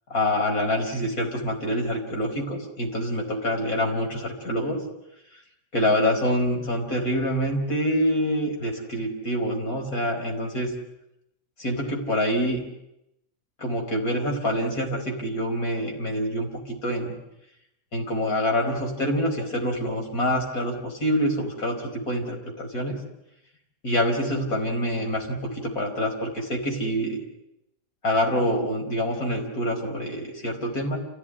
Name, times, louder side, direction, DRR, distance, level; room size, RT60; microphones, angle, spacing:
voice 1, 0.1-4.8 5.7-10.7 11.6-12.6 13.6-17.1 17.9-23.0 23.8-27.2 28.0-31.0, equal, 60° left, 2 dB, 5.4 m, -26 dB
28.5 x 16.5 x 9.9 m, 0.84 s
omnidirectional pair, 1.7 m